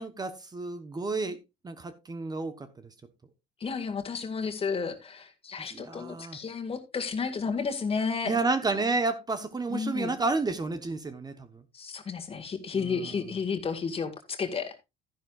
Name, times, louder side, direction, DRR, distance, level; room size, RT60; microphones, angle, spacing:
voice 1, 0.0-1.4 1.6-2.7 5.6-6.4 8.2-11.6 12.8-13.1, right 3 dB, 25° right, 1.1 m, -31 dB
voice 2, 3.6-8.4 9.7-10.1 11.7-14.8, left 5 dB, 35° left, 1.9 m, -32 dB
12.5 x 10.5 x 2.4 m
cardioid pair, 110°, 17 cm